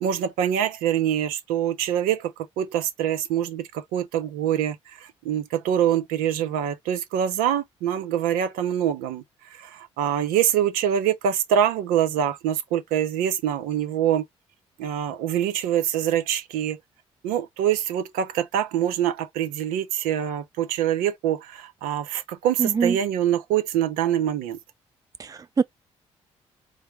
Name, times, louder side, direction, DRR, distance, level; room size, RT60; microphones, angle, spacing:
voice 1, 0.0-2.3 2.6-4.8 5.2-9.2 9.6-14.2 14.8-16.8 17.2-24.6, right 10 dB, 70° right, 0.6 m, -24 dB
voice 2, 22.6-23.0 25.2-25.6, right 5 dB, 25° right, 0.4 m, -24 dB
4.5 x 2.1 x 4.3 m
figure-of-eight pair, 40°, 15 cm